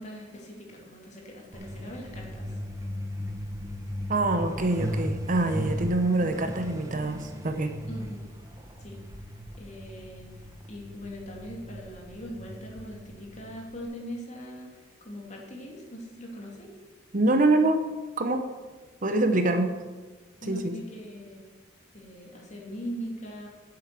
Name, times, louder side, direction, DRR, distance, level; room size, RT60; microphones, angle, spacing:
voice 1, 0.0-2.5 7.9-8.3 8.8-9.0 9.6-16.7 19.4-19.6 20.4-21.4 21.9-23.5, equal, 35° left, -1 dB, 2.5 m, -41 dB
Truck, 1.5-13.8, equal, 15° right, 1.0 m, -37 dB
voice 2, 4.1-7.7 17.1-17.8 18.2-18.5 19.0-19.7 20.4-20.8, right 2 dB, 40° right, 7 dB, 0.8 m, -25 dB
8.6 x 7.7 x 7.5 m, 1.3 s
head